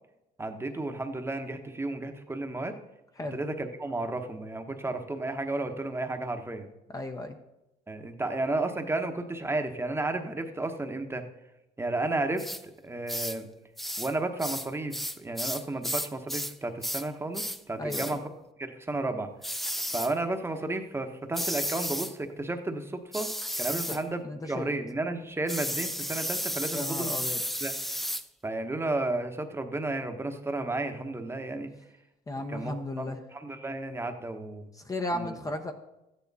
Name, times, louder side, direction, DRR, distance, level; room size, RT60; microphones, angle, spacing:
voice 1, 0.4-2.8 3.2-6.7 7.9-11.2 11.8-13.5 14.0-18.3 18.6-19.3 19.9-23.3 23.6-27.2 27.6-27.7 28.4-31.7 32.5-34.7 35.1-35.4, right 2 dB, 15° right, 5 dB, 1.0 m, -33 dB
voice 2, 6.9-7.4 17.8-18.2 23.7-24.0 24.2-24.7 26.7-27.4 32.3-33.2 34.8-35.7, left 1 dB, 20° left, 5 dB, 0.8 m, -34 dB
sound 1, 12.4-12.6 13.1-13.4 13.8-14.1 14.4-16.6 16.8-17.1 17.3-17.6 17.9-18.2 19.4-20.1 21.3-22.1 23.1-24.0 25.5-28.3, equal, ahead, 0.3 m, -33 dB
13.0 x 9.5 x 4.1 m, 0.93 s
cardioid pair, 110°, 17 cm